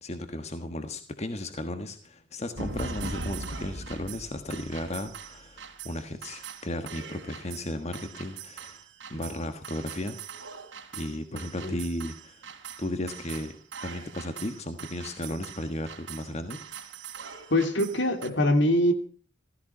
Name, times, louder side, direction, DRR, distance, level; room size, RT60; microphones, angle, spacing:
voice 1, 0.0-8.8 9.1-10.2 10.9-12.5 12.8-16.6, left 1 dB, 35° left, 9 dB, 1.4 m, -35 dB
sound 1, 2.6-18.3, right 4 dB, 85° right, 3.4 m, -41 dB
voice 2, 17.5-18.9, left 1 dB, 70° left, 8 dB, 2.5 m, -23 dB
15.5 x 15.0 x 5.6 m, 0.43 s
head